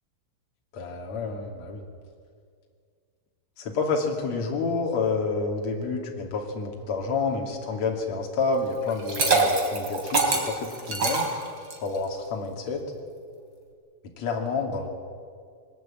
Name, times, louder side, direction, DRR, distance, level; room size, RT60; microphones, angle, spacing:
voice 1, 0.7-1.8 3.6-11.3 11.8-12.8 14.2-14.9, left 4 dB, 40° left, 1 dB, 3.3 m, -29 dB
Liquid, 8.9-11.9, right 4 dB, 30° right, 3.0 m, -24 dB
22.0 x 19.5 x 8.8 m, 2.1 s
omnidirectional pair, 5.7 m